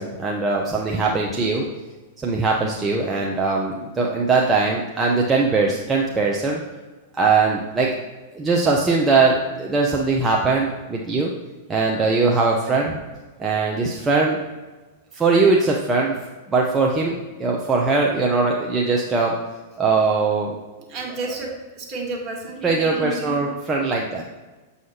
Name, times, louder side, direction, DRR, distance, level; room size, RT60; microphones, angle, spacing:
voice 1, 0.0-1.6 2.2-6.6 7.1-7.9 8.3-11.3 11.7-13.0 13.4-14.4 15.1-16.1 16.5-19.3 19.8-20.6 22.6-24.2, right 4 dB, 20° right, -2 dB, 0.8 m, -20 dB
voice 2, 1.0-1.5 20.9-23.3, right 3 dB, 40° right, 0 dB, 1.7 m, -32 dB
7.5 x 5.7 x 2.8 m, 1.2 s
hypercardioid pair, 105°, 0 cm